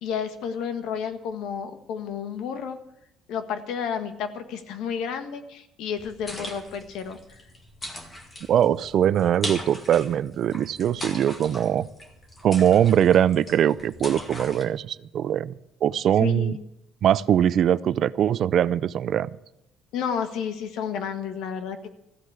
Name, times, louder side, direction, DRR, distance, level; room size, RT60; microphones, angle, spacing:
voice 1, 0.0-2.8 3.3-7.4 16.2-16.6 19.9-21.9, left 7 dB, 75° left, 8 dB, 1.6 m, -31 dB
sound 1, 6.0-14.6, left 1 dB, 20° left, 2.2 m, -39 dB
voice 2, 8.5-11.9 12.4-15.5 15.8-16.6 17.0-19.3, right 10 dB, 50° right, 17 dB, 0.4 m, -21 dB
15.0 x 8.4 x 8.1 m, 0.88 s
cardioid pair, 150°, 0 cm